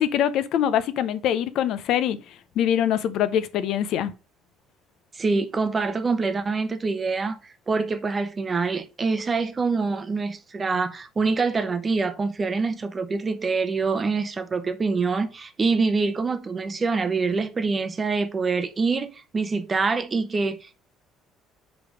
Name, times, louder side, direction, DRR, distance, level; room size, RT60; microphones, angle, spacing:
voice 1, 0.0-2.2 2.6-4.1, left 10 dB, 60° left, 0.6 m, -23 dB
voice 2, 5.1-20.8, right 4 dB, 20° right, 0.7 m, -25 dB
5.2 x 4.9 x 4.9 m
cardioid pair, 150°, 0 cm